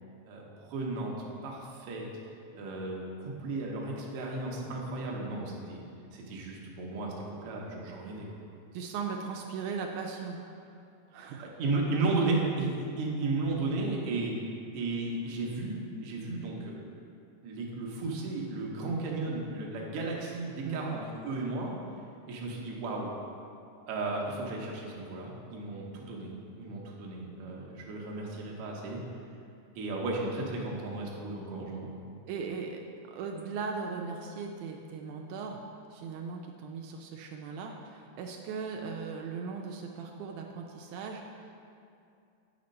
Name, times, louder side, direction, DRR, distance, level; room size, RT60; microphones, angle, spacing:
voice 1, 0.3-1.1 1.4-2.0 2.5-7.1 7.4-8.4 11.1-14.3 14.7-17.0 17.4-21.7 22.3-23.1 23.9-29.0 29.7-31.9, right 3 dB, 65° right, -2 dB, 1.6 m, -34 dB
voice 2, 8.7-10.4 11.1-11.5 20.7-21.0 32.3-32.8 33.1-35.6 35.9-41.6, right 5 dB, 80° right, 2 dB, 2.0 m, -38 dB
8.4 x 4.2 x 5.2 m, 2.5 s
omnidirectional pair, 3.6 m